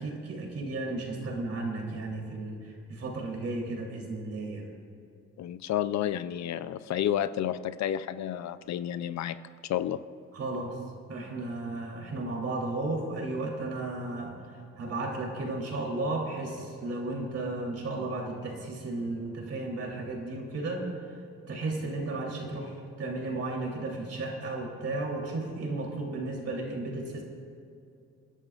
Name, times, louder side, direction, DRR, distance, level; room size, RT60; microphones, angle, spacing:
voice 1, 0.0-4.7 10.3-10.8 11.1-20.9 21.5-27.2, right 2 dB, 55° right, 0 dB, 3.2 m, -34 dB
voice 2, 5.4-9.4 9.6-10.0, left 11 dB, 65° left, 13 dB, 0.5 m, -30 dB
28.0 x 11.0 x 2.4 m, 2.4 s
cardioid pair, 90°, 30 cm